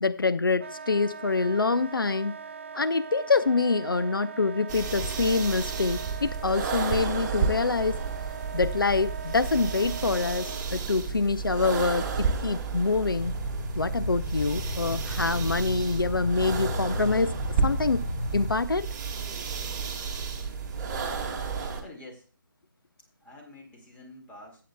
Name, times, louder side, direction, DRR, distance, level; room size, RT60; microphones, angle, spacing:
voice 1, 0.0-2.3 2.7-8.0 8.5-13.4 13.8-17.3 17.6-18.0 18.3-18.9, left 4 dB, 75° left, 0.6 m, -26 dB
Wind instrument woodwind instrument, 0.6-10.7, right 6 dB, 35° right, 0.4 m, -41 dB
sound 1, 4.7-21.8, right 5 dB, 20° right, 1.7 m, -32 dB
sound 2, 13.2-18.5, left 1 dB, 35° left, 3.2 m, -34 dB
voice 2, 21.8-22.3 23.2-24.6, left 1 dB, 10° left, 1.9 m, -47 dB
15.0 x 8.4 x 2.2 m
figure-of-eight pair, 150°, 12 cm